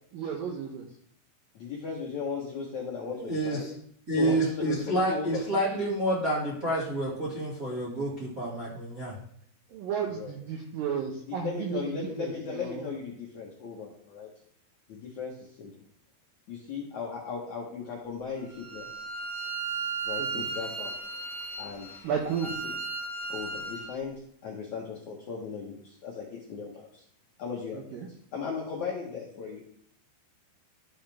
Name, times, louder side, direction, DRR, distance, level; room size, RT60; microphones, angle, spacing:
voice 1, 0.1-0.9 4.2-4.4 9.7-12.9 20.2-20.5 22.0-22.5 27.7-28.1, right 7 dB, 90° right, 1 dB, 2.0 m, -33 dB
voice 2, 1.5-3.7 4.2-4.8 5.1-5.4 10.1-10.3 11.4-14.3 14.9-15.3 15.6-15.7 16.5-19.0 20.0-20.9 21.6-22.0 22.6-22.7 23.3-24.1 24.4-26.9 27.4-27.8 28.3-29.7, left 6 dB, 75° left, -2 dB, 1.7 m, -37 dB
voice 3, 3.1-3.7 4.1-9.1, right 1 dB, 50° right, -7 dB, 1.0 m, -29 dB
Bowed string instrument, 18.5-23.9, right 4 dB, 30° left, 1.5 m, -35 dB
14.5 x 5.6 x 3.4 m, 0.63 s
omnidirectional pair, 5.4 m